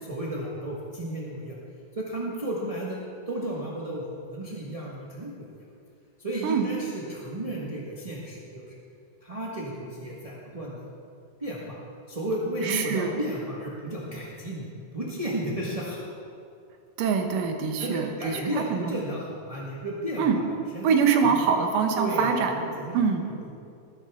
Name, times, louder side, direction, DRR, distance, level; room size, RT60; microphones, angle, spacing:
voice 1, 0.0-1.5 1.9-3.0 3.3-5.4 6.2-8.7 9.2-10.8 11.4-11.8 12.1-16.1 17.8-20.3 20.7-20.9 21.2-21.4 21.9-23.0 23.3-23.5, right 1 dB, 45° right, -5 dB, 0.4 m, -33 dB
voice 2, 12.6-13.1 17.0-18.4 18.7-19.0 20.2-20.4 20.8-22.5 22.9-23.3, right 6 dB, 90° right, 4 dB, 2.7 m, -24 dB
19.0 x 10.0 x 3.7 m, 2.4 s
omnidirectional pair, 3.7 m